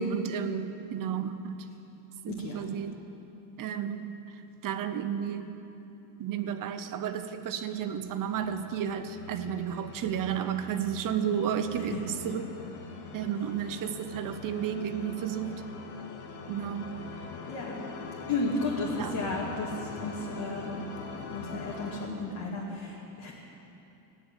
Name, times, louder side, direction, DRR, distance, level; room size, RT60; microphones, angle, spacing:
voice 1, 0.0-1.6 2.2-3.0 3.6-4.1 4.6-5.5 6.2-12.5 13.1-15.6 16.5-16.9 19.0-19.1, right 8 dB, 50° right, 9 dB, 0.9 m, -32 dB
voice 2, 2.3-2.7 11.7-12.0 17.4-17.8 18.3-20.9 21.2-23.3, left 2 dB, 50° left, -5 dB, 2.3 m, -33 dB
sound 1, 7.7-22.1, left 4 dB, 70° left, 1.7 m, -43 dB
14.0 x 9.8 x 8.9 m, 2.9 s
cardioid pair, 130°, 43 cm